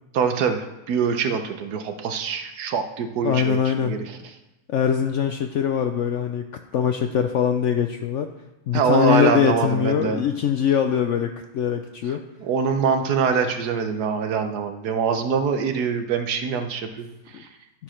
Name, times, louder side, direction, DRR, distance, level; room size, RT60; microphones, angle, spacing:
voice 1, 0.1-4.0 8.7-10.2 12.4-17.5, right 6 dB, 85° right, 7 dB, 1.4 m, -24 dB
voice 2, 3.2-4.0 4.7-6.5 6.7-8.3 8.7-12.2 17.3-17.4, left 8 dB, 65° left, 6 dB, 0.7 m, -22 dB
12.5 x 4.9 x 5.8 m, 1.0 s
omnidirectional pair, 1.6 m